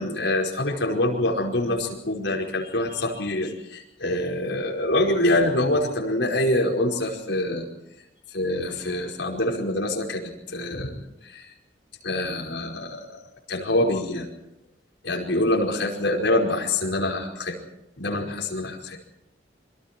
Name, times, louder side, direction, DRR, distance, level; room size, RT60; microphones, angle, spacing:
voice 1, 0.0-7.7 8.3-11.0 11.3-11.4 12.0-13.0 13.5-14.3 15.0-17.6 18.0-19.0, left 1 dB, 70° left, -1 dB, 5.1 m, -25 dB
27.0 x 24.0 x 4.6 m, 0.89 s
head